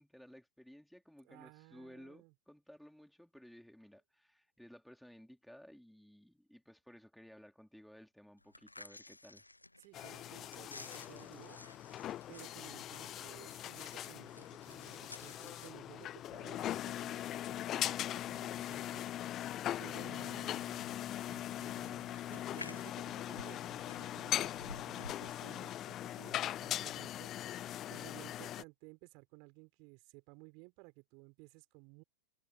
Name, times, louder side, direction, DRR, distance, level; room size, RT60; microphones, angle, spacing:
voice 1, 0.0-9.4, equal, ahead, 3.5 m, -57 dB
voice 2, 1.2-2.3 9.8-11.9 12.3-32.0, right 32 dB, 45° right, 5.0 m, -57 dB
sound 1, 8.4-26.2, left 2 dB, 85° left, 1.0 m, -56 dB
sound 2, 9.9-28.6, left 12 dB, 30° left, 0.6 m, -40 dB
figure-of-eight pair, 90°, 0 cm